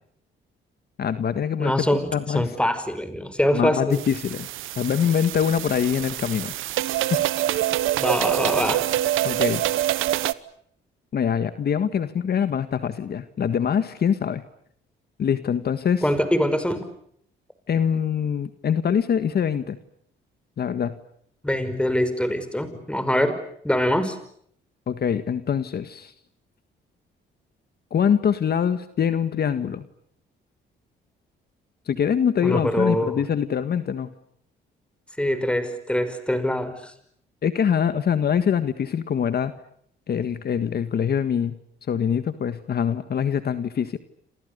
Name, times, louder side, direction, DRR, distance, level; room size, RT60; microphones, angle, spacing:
voice 1, 1.0-2.5 3.5-4.5 4.8-6.5 7.1-7.2 7.5-7.6 9.2-9.6 11.1-14.4 15.2-16.1 17.7-19.8 20.6-21.0 24.9-26.1 27.9-29.8 31.9-34.1 37.4-39.5 40.1-41.6 41.9-44.0, left 8 dB, 55° left, 11 dB, 1.7 m, -24 dB
voice 2, 1.6-4.0 8.0-8.9 16.0-16.8 21.4-23.4 23.6-24.2 32.4-33.2 35.2-36.9, left 1 dB, 5° left, 11 dB, 5.5 m, -24 dB
sound 1, 3.9-10.3, right 14 dB, 85° right, 1.1 m, -25 dB
29.0 x 27.5 x 6.8 m, 0.68 s
cardioid pair, 90°, 20 cm